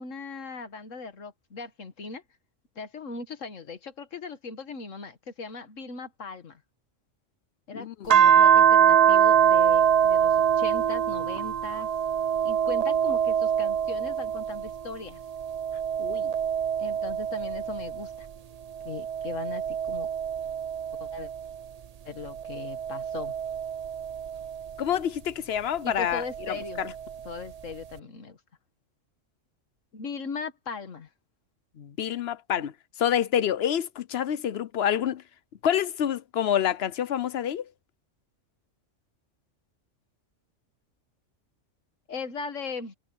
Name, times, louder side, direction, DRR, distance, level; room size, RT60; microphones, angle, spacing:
voice 1, 0.0-2.2 2.8-6.6 7.7-11.9 12.4-15.2 16.8-18.3 18.8-20.1 21.0-21.3 22.1-23.4 25.8-26.8 27.3-28.4 29.9-31.1 42.1-42.9, left 4 dB, 80° left, 1.9 m, -38 dB
sound 1, 8.1-14.8 15.3-18.2 18.8-21.5 22.3-24.7 26.1-27.1, right 8 dB, 80° right, 0.3 m, -24 dB
voice 2, 16.0-16.3 24.8-26.2 26.5-26.9 31.8-32.7 33.0-35.2 35.6-37.6, left 9 dB, 60° left, 0.9 m, -27 dB
omnidirectional pair, 1.3 m